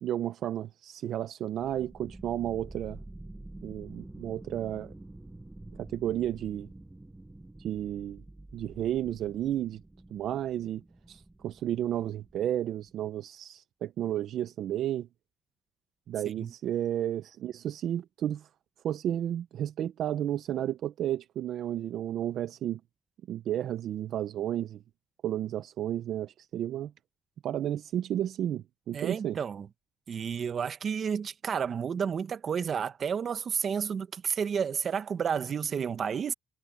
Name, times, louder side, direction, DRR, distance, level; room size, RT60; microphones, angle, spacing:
voice 1, 0.0-3.0 3.6-4.9 5.8-6.7 7.6-8.2 8.5-9.8 10.1-10.8 11.1-15.1 16.1-18.5 18.8-22.8 23.3-24.8 25.2-26.9 27.4-29.4, right 11 dB, 75° right, 0.7 m, -32 dB
sound 1, 1.6-12.9, right 2 dB, 15° right, 5.5 m, -48 dB
voice 2, 28.9-29.7 30.1-36.3, right 7 dB, 55° right, 1.4 m, -31 dB
cardioid pair, 90°, 0 cm